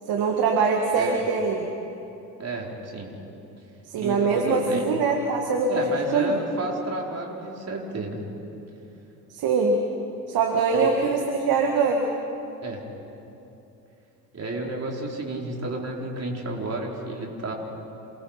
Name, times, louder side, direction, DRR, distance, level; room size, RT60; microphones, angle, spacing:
voice 1, 0.1-1.7 3.9-6.4 9.3-9.8 10.3-12.1, right 4 dB, 50° right, 2 dB, 1.9 m, -23 dB
voice 2, 2.4-3.1 4.0-4.8 5.7-8.2 10.7-11.1 12.6-12.8 14.3-17.5, right 2 dB, 30° right, -1 dB, 4.6 m, -31 dB
27.5 x 19.0 x 5.8 m, 2.9 s
figure-of-eight pair, 50°, 47 cm